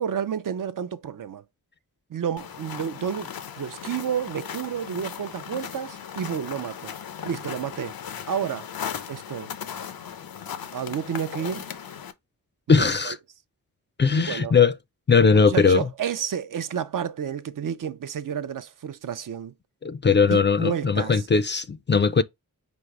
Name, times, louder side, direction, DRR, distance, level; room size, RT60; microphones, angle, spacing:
voice 1, 0.0-1.4 2.1-6.9 7.2-8.0 8.3-8.7 9.1-9.5 10.7-11.7 12.7-13.2 14.1-14.6 15.3-19.5 20.3-21.2, right 8 dB, 65° right, 0.5 m, -30 dB
sound 1, 2.4-12.1, left 8 dB, 85° left, 0.6 m, -37 dB
voice 2, 12.7-13.2 14.0-14.7 15.1-15.9 19.8-22.2, left 5 dB, 30° left, 0.4 m, -19 dB
5.2 x 2.0 x 4.5 m
wide cardioid pair, 80°, 35 cm